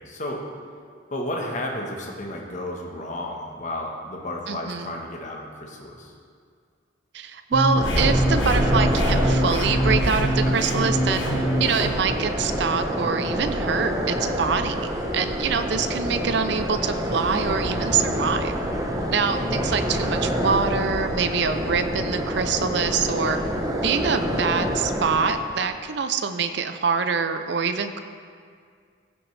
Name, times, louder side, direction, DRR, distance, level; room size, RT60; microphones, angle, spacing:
voice 1, 0.1-0.4 1.1-6.1 18.7-18.8, left 1 dB, 40° left, 0 dB, 1.2 m, -32 dB
voice 2, 4.5-5.0 7.1-11.3 11.6-18.5 19.1-23.4 23.8-28.0, right 5 dB, 60° right, 9 dB, 0.5 m, -25 dB
sound 1, 7.5-11.9, equal, 65° left, 1.4 m, -25 dB
sound 2, 7.7-25.7, equal, 15° right, 0.8 m, -26 dB
15.5 x 6.1 x 3.3 m, 2.1 s
head